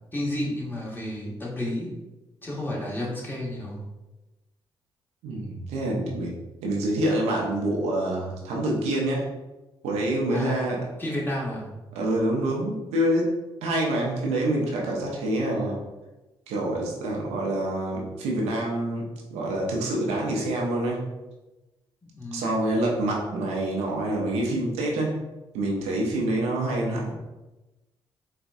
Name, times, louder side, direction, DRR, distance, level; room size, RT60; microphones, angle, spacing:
voice 1, 0.1-1.9 2.4-3.8 10.3-10.7 11.0-11.7 22.0-22.6 26.2-26.5, left 1 dB, 20° left, -4 dB, 1.4 m, -31 dB
voice 2, 5.2-6.3 6.6-9.3 9.8-10.8 11.9-13.4 13.6-15.8 16.5-21.0 22.3-25.2 25.5-27.2, right 1 dB, 80° right, -2 dB, 0.6 m, -26 dB
4.1 x 2.3 x 2.6 m, 1.1 s
hypercardioid pair, 45°, 11 cm